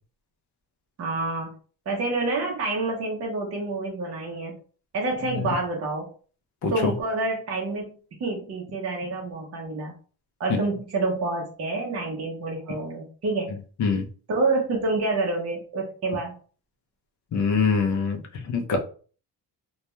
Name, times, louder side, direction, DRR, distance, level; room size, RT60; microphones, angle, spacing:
voice 1, 1.0-1.5 1.9-4.6 4.9-6.1 6.7-7.9 8.2-9.9 10.4-13.5 14.3-16.3, right 2 dB, 40° right, -1 dB, 0.6 m, -28 dB
voice 2, 6.6-6.9 10.5-10.6 13.8-14.1 17.3-18.2 18.4-18.8, left 5 dB, 45° left, 3 dB, 0.5 m, -23 dB
2.3 x 2.2 x 2.9 m, 0.40 s
cardioid pair, 165°, 40 cm